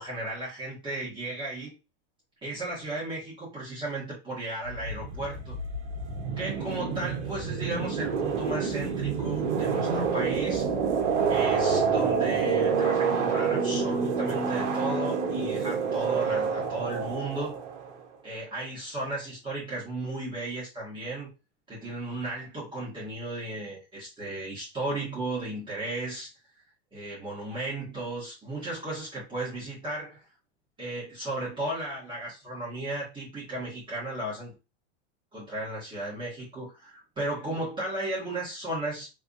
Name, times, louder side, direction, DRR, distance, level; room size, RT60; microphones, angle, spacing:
voice 1, 0.0-1.7 2.4-5.6 6.4-10.7 11.3-17.6 18.2-21.3 21.7-26.3 26.9-30.2 30.8-34.5 35.3-39.1, right 2 dB, 15° right, -7 dB, 1.8 m, -35 dB
sound 1, 4.7-18.1, right 5 dB, 80° right, 1.1 m, -28 dB
3.5 x 3.4 x 2.6 m, 0.28 s
supercardioid pair, 145°, 35 cm